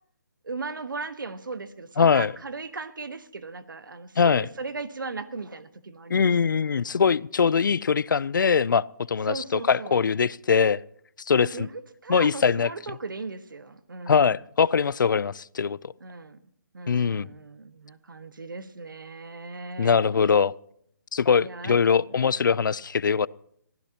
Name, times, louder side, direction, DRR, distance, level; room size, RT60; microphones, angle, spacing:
voice 1, 0.4-6.3 9.3-10.0 11.4-11.7 12.0-14.2 16.0-16.4 16.7-19.9 21.4-21.8 22.1-22.3, right 4 dB, 90° right, 12 dB, 1.3 m, -37 dB
voice 2, 2.0-2.3 4.2-4.5 6.1-10.8 11.3-11.7 12.1-12.7 14.1-15.9 16.9-17.3 19.8-20.5 21.1-23.3, left 6 dB, 75° left, 23 dB, 0.5 m, -22 dB
23.5 x 15.5 x 2.9 m, 0.67 s
hypercardioid pair, 160°, 11 cm